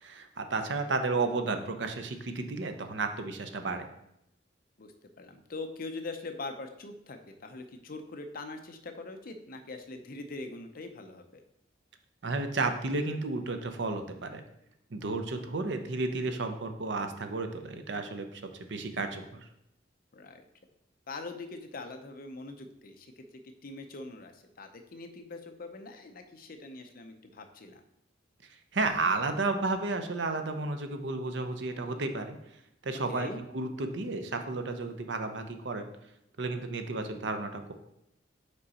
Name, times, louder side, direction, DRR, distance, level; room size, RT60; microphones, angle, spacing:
voice 1, 0.0-3.9 12.2-14.4 14.9-19.4 28.7-32.4 32.8-33.3 33.5-35.9 36.4-37.7, right 3 dB, 65° right, 7 dB, 0.6 m, -32 dB
voice 2, 4.8-11.4 20.1-20.4 21.1-23.2 23.6-27.8 33.1-33.4, left 3 dB, 50° left, 6 dB, 0.6 m, -42 dB
5.3 x 4.8 x 4.2 m, 0.81 s
head